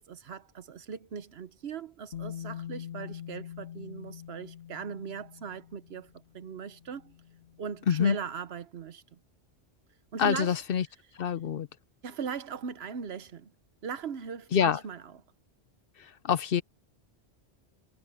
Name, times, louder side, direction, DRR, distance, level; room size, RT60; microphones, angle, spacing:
voice 1, 0.0-7.1 7.6-9.2 10.1-10.6 12.0-13.5 13.8-15.0, right 6 dB, 70° right, 1.1 m, -39 dB
Bass guitar, 2.1-8.2, left 10 dB, 75° left, 2.6 m, -44 dB
voice 2, 10.2-10.9 11.1-11.7 14.5-14.8 16.0-16.6, left 7 dB, 60° left, 0.8 m, -26 dB
omnidirectional pair, 1.1 m